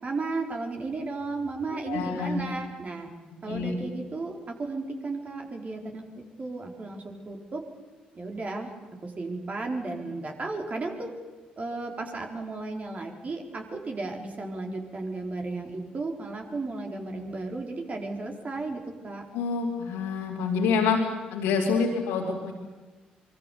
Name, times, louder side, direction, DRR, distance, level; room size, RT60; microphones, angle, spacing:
voice 1, 0.0-3.1 3.4-7.6 8.1-8.7 9.0-11.1 11.6-19.2, right 3 dB, 35° right, 2 dB, 4.4 m, -34 dB
voice 2, 1.9-2.4 3.5-3.8 19.3-21.0 21.3-22.5, left 5 dB, 70° left, -3 dB, 2.9 m, -27 dB
25.0 x 23.5 x 7.0 m, 1.3 s
figure-of-eight pair, 40°, 4 cm